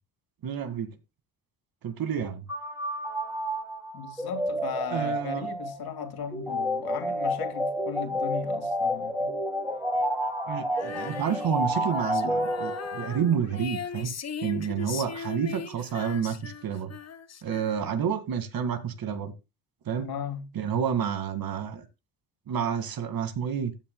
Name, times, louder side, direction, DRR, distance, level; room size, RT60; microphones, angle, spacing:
voice 1, 0.4-0.9 1.8-2.4 4.9-5.5 10.5-14.1 14.4-16.9 17.4-19.3 19.9-20.1 20.5-21.8 22.5-23.7, right 7 dB, 60° right, 2.2 m, -29 dB
sound 1, 2.5-13.2, equal, 5° right, 2.7 m, -30 dB
voice 2, 3.9-9.4 20.0-20.5, left 8 dB, 65° left, 2.5 m, -37 dB
Female singing, 10.7-18.1, left 6 dB, 40° left, 1.4 m, -39 dB
14.0 x 9.8 x 2.3 m
cardioid pair, 140°, 39 cm